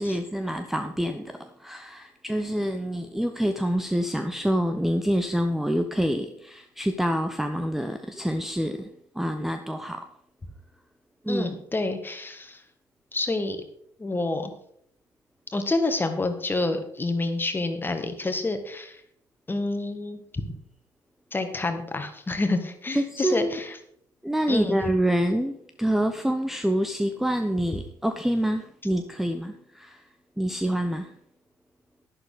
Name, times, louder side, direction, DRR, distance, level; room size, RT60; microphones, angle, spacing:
voice 1, 0.0-10.1 11.2-11.5 22.9-23.6 24.2-30.0 30.4-31.1, equal, 5° right, 7 dB, 0.9 m, -27 dB
voice 2, 11.3-12.6 13.1-13.6 14.0-14.5 15.5-19.0 19.5-20.5 21.3-23.7 24.5-24.8, left 2 dB, 20° left, 8 dB, 1.9 m, -28 dB
11.5 x 11.5 x 4.0 m, 0.70 s
figure-of-eight pair, 50°, 10 cm